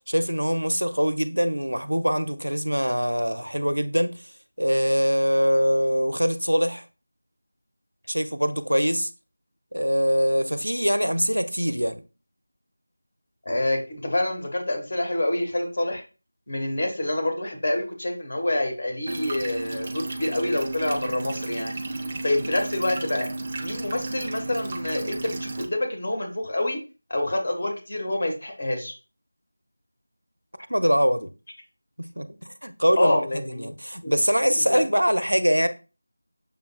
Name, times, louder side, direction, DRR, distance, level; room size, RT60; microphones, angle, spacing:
voice 1, 0.1-4.2 4.6-6.9 8.1-9.1 9.7-12.0 30.7-31.3 32.0-35.7, equal, 85° right, 0.6 m, -23 dB
voice 2, 13.4-16.0 16.5-21.8 22.2-23.3 23.6-26.8 27.1-28.9 33.0-33.7 34.0-34.1 34.7-34.8, left 1 dB, 40° left, 1.2 m, -27 dB
sound 1, 19.1-25.7, right 2 dB, 25° right, 0.5 m, -33 dB
6.9 x 2.3 x 2.3 m
figure-of-eight pair, 170°, 0 cm